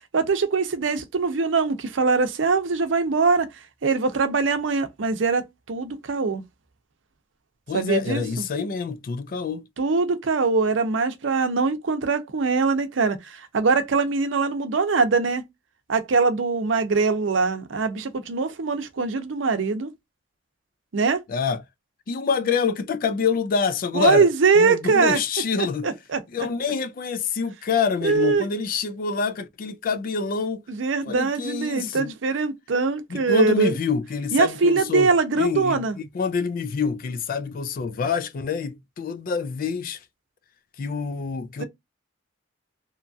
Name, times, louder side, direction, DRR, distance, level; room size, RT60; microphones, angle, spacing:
voice 1, 0.1-3.5 3.8-5.4 5.7-6.4 7.7-8.2 9.8-15.4 15.9-19.9 20.9-21.2 23.9-25.2 25.8-26.5 28.0-28.4 30.7-33.7 34.3-36.0 41.6-41.7, right 4 dB, 85° right, 0.6 m, -22 dB
voice 2, 7.7-9.7 21.3-21.6 22.1-24.3 24.6-25.9 26.3-30.6 31.1-32.1 33.1-35.1 35.4-40.0 40.8-41.6, left 5 dB, 50° left, 0.3 m, -26 dB
2.8 x 2.3 x 2.6 m
head